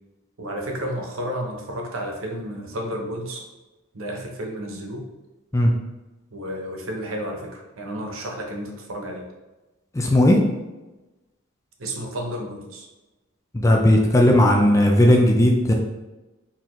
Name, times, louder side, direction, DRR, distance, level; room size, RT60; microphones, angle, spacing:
voice 1, 0.4-3.4 3.9-5.1 6.3-9.3 11.8-12.9, equal, 75° right, 2 dB, 0.9 m, -31 dB
voice 2, 9.9-10.4 13.5-15.7, left 1 dB, 15° left, 1 dB, 0.5 m, -16 dB
4.3 x 4.0 x 3.1 m, 1.1 s
head